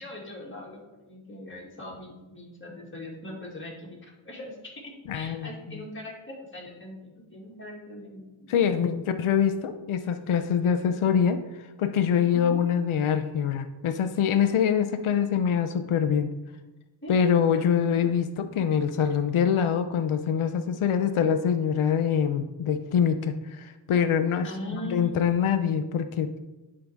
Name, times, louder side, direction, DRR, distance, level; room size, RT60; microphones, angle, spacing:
voice 1, 0.0-4.0 4.2-8.8 12.3-12.7 17.0-17.2 17.5-17.6 17.9-18.1 24.4-25.4, left 1 dB, 25° left, -3 dB, 2.1 m, -41 dB
voice 2, 5.1-5.8 8.5-11.4 11.8-16.3 17.1-26.4, left 7 dB, 85° left, 9 dB, 0.7 m, -24 dB
10.5 x 3.8 x 4.6 m, 1.1 s
wide cardioid pair, 80°, 48 cm